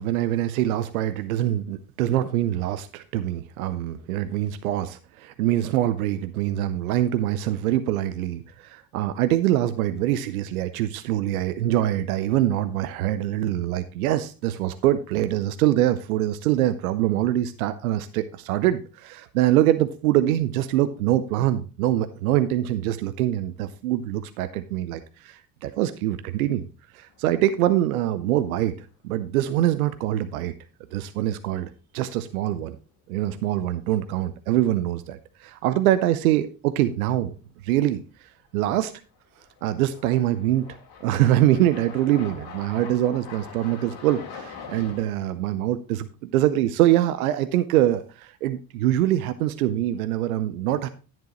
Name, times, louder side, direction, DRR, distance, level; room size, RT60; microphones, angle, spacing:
voice 1, 0.0-26.7 26.9-28.7 29.0-30.5 30.9-32.8 33.1-35.2 35.6-37.3 37.6-38.9 39.6-40.7 41.0-50.9, right 13 dB, 75° right, 12 dB, 0.7 m, -24 dB
sound 1, 27.1-27.7 28.1-28.2 31.1-31.2 32.5-32.8 33.1-33.2 38.5-38.6 39.4-45.1, left 6 dB, 65° left, 2.2 m, -43 dB
10.5 x 9.0 x 3.0 m, 0.34 s
figure-of-eight pair, 55°, 44 cm